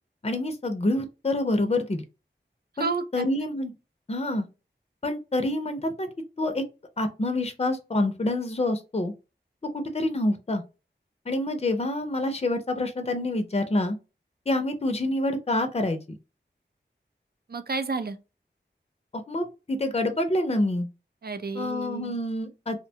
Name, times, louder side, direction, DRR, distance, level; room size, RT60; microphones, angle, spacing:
voice 1, 0.2-2.0 2.8-2.9 3.1-3.7 4.1-4.5 5.0-6.1 6.4-6.6 7.0-9.1 9.7-10.6 11.3-14.0 14.5-16.2 19.1-20.9 21.5-22.9, left 1 dB, 30° left, 0.5 m, -27 dB
voice 2, 2.8-3.3 17.5-18.2 21.2-22.2, right 4 dB, 55° right, 0.5 m, -31 dB
2.7 x 2.1 x 2.7 m
wide cardioid pair, 40°, 19 cm